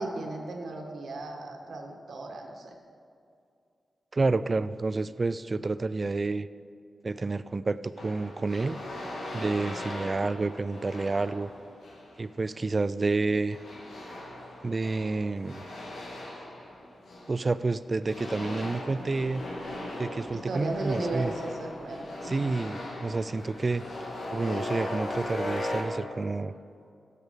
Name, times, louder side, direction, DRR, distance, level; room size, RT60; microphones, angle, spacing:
voice 1, 0.0-2.8 20.3-22.5, right 2 dB, 75° right, 2 dB, 1.6 m, -35 dB
voice 2, 4.1-6.5 7.0-8.8 9.3-11.5 12.2-13.6 14.6-15.6 17.3-19.4 20.0-21.3 22.2-23.8 24.3-26.5, right 3 dB, 40° right, 15 dB, 0.4 m, -29 dB
sound 1, 8.0-12.2 13.5-17.6 18.0-25.8, left 1 dB, 80° left, 2.3 m, -38 dB
16.5 x 6.7 x 5.3 m, 2.3 s
cardioid pair, 60°, 0 cm